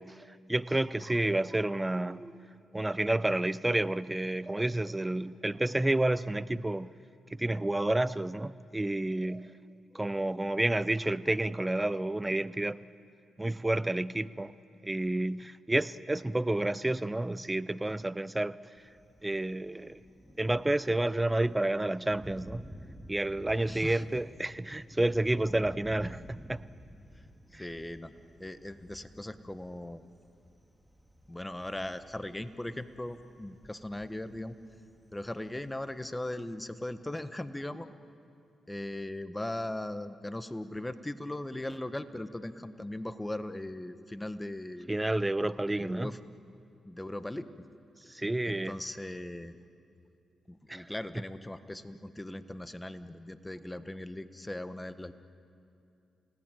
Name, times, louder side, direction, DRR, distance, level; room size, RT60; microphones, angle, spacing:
voice 1, 0.0-2.4 2.7-6.9 7.3-9.5 9.9-12.8 13.4-14.5 14.8-18.6 19.2-20.0 20.4-22.6 23.1-26.6 27.5-27.6 44.9-46.1 48.1-48.7 50.7-50.9, right 1 dB, 15° right, 0.6 m, -30 dB
Thunder, 18.8-36.3, equal, ahead, 2.0 m, -53 dB
voice 2, 23.7-24.0 27.1-27.2 27.5-28.1 28.4-30.0 31.3-34.6 35.1-37.9 38.7-44.9 45.7-46.2 46.8-47.5 48.0-49.6 50.5-55.1, left 1 dB, 15° left, 1.3 m, -39 dB
29.5 x 18.5 x 9.2 m
supercardioid pair, 50°, 0 cm